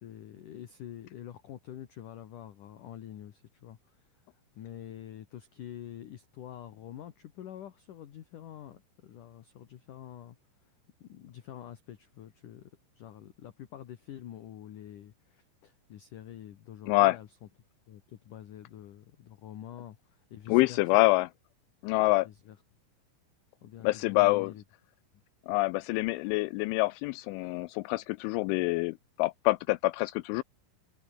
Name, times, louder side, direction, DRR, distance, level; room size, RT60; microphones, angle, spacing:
voice 1, 0.0-10.7 11.0-17.4 17.9-21.0 22.1-22.6 23.6-24.6 25.1-25.2, left 11 dB, 65° left, 2.1 m, -47 dB
voice 2, 20.5-21.3 21.8-22.3 23.8-24.5 25.5-30.4, left 21 dB, 85° left, 2.7 m, -26 dB
open air
omnidirectional pair, 5.9 m